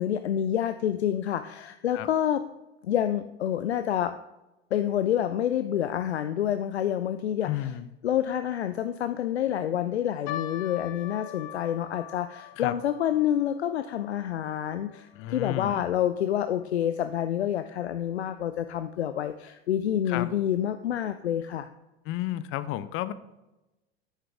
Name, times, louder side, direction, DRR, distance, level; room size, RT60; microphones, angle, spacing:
voice 1, 0.0-2.4 2.8-4.1 4.7-7.7 8.0-21.7, left 10 dB, 80° left, 10 dB, 0.5 m, -28 dB
voice 2, 7.4-7.9 12.6-12.8 15.1-15.9 20.1-20.3 22.0-23.1, left 14 dB, 40° left, 15 dB, 0.6 m, -32 dB
sound 1, 10.3-16.7 17.0-17.1 17.9-18.1 18.8-18.9 19.2-19.4, left 11 dB, 55° left, 1.0 m, -43 dB
10.0 x 7.6 x 3.5 m, 0.99 s
figure-of-eight pair, 80°, 32 cm